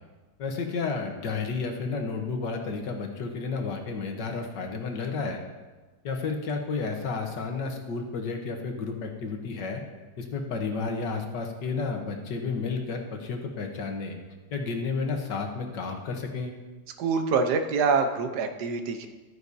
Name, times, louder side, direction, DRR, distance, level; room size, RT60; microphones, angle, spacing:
voice 1, 0.4-5.4 6.0-9.8 10.2-14.2 14.5-16.5, left 4 dB, 80° left, 4 dB, 1.8 m, -31 dB
voice 2, 17.0-19.1, right 4 dB, 70° right, 7 dB, 1.4 m, -25 dB
13.0 x 9.6 x 2.7 m, 1.2 s
omnidirectional pair, 1.9 m